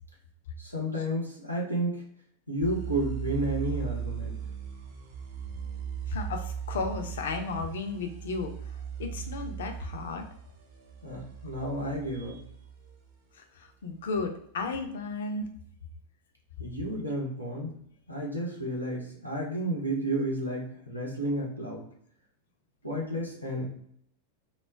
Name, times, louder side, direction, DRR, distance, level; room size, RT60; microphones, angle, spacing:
voice 1, 0.6-2.0 2.5-4.4 11.0-12.4 16.6-17.7 18.1-21.9 22.8-23.6, right 1 dB, 90° right, -2 dB, 0.7 m, -31 dB
sound 1, 2.6-13.1, right 8 dB, 45° right, 0.5 m, -38 dB
voice 2, 6.1-8.5 9.0-10.2 13.3-15.5, left 3 dB, 60° left, 5 dB, 0.4 m, -34 dB
2.2 x 2.1 x 3.3 m, 0.68 s
figure-of-eight pair, 90°, 0 cm